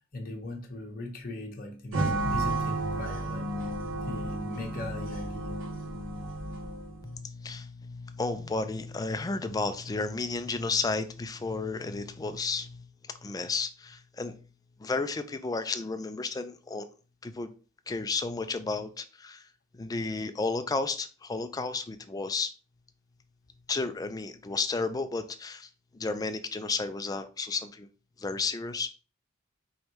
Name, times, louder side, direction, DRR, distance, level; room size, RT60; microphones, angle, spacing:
voice 1, 0.1-3.7 4.0-5.6, left 2 dB, 45° left, 1.0 m, -39 dB
sound 1, 1.9-7.1, right 2 dB, 80° right, 1.2 m, -32 dB
voice 2, 7.0-14.4 14.8-16.9 17.2-17.5 17.9-19.4 19.8-22.5 23.7-27.9 28.2-28.9, left 3 dB, 20° left, 0.3 m, -32 dB
5.0 x 3.1 x 3.0 m
head